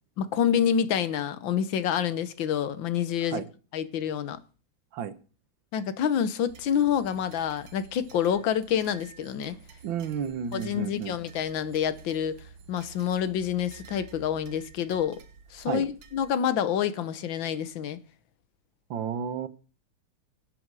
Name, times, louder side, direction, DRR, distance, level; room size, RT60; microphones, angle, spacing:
voice 1, 0.2-3.4 3.7-4.4 5.7-9.6 10.5-12.4 12.7-15.2 15.5-18.0, left 8 dB, 90° left, 1.7 m, -27 dB
sound 1, 6.5-16.3, right 7 dB, 70° right, 1.7 m, -50 dB
voice 2, 9.8-11.2 15.7-15.9 18.9-19.5, right 8 dB, 90° right, 1.8 m, -32 dB
23.5 x 8.0 x 4.7 m
omnidirectional pair, 2.0 m